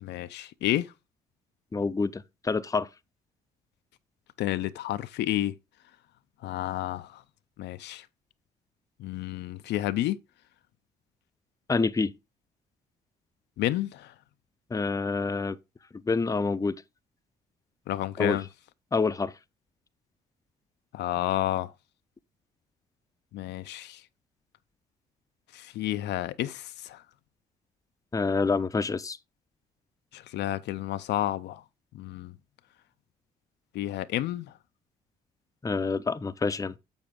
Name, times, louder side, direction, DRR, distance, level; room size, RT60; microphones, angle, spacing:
voice 1, 0.0-0.9 4.4-5.5 6.4-7.2 7.6-8.1 9.0-10.2 13.6-14.1 17.9-18.4 20.9-21.7 23.3-24.0 25.5-27.0 30.1-31.6 31.9-32.3 33.7-34.5, left 14 dB, 60° left, 0.5 m, -30 dB
voice 2, 1.7-2.9 11.7-12.1 14.7-15.6 16.1-16.8 18.2-18.4 18.9-19.3 28.1-29.2 35.6-36.7, left 4 dB, 15° left, 0.6 m, -27 dB
7.1 x 7.0 x 3.7 m
hypercardioid pair, 50°, 20 cm